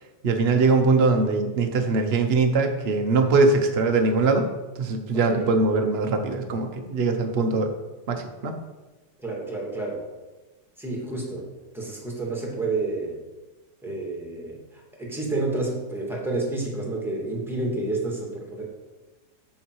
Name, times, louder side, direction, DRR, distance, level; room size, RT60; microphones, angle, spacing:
voice 1, 0.2-4.5 4.8-7.7 8.1-8.6, right 3 dB, 45° right, 4 dB, 1.0 m, -22 dB
voice 2, 9.2-10.0 10.8-13.2 13.8-18.7, right 2 dB, ahead, -2 dB, 1.8 m, -30 dB
7.5 x 7.1 x 4.6 m, 1.2 s
omnidirectional pair, 1.9 m